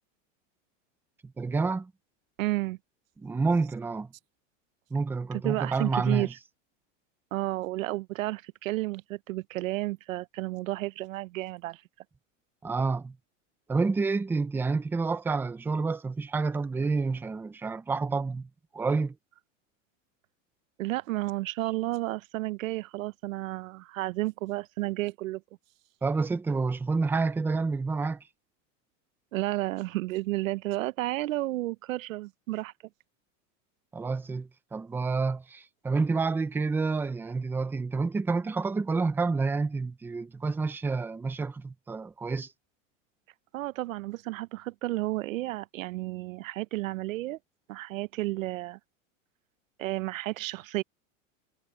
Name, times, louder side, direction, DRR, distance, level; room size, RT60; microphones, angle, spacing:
voice 1, 1.2-1.9 3.2-4.1 4.9-6.3 12.6-13.2 13.7-19.2 26.0-28.2 33.9-42.5, right 4 dB, 5° right, 0.5 m, -29 dB
voice 2, 2.4-2.8 5.4-6.3 7.3-11.8 20.8-25.4 29.3-32.7 43.5-47.4 47.7-48.8 49.8-50.8, right 18 dB, 85° right, 1.0 m, -32 dB
supercardioid pair, 155°, 39 cm